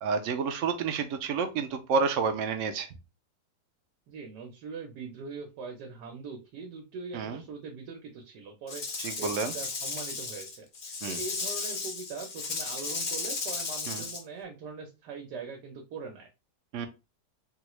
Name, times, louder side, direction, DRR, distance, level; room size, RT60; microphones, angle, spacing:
voice 1, 0.0-2.9 7.1-7.4 9.0-9.5 11.0-11.2 13.9-14.0 16.7-16.9, right 5 dB, 65° right, 0.8 m, -29 dB
voice 2, 4.1-8.8 9.2-10.7 11.1-16.3, right 4 dB, 85° right, 1.4 m, -41 dB
Rattle / Rattle (instrument), 8.7-14.2, left 4 dB, 70° left, 0.4 m, -35 dB
3.4 x 2.4 x 3.0 m
omnidirectional pair, 1.7 m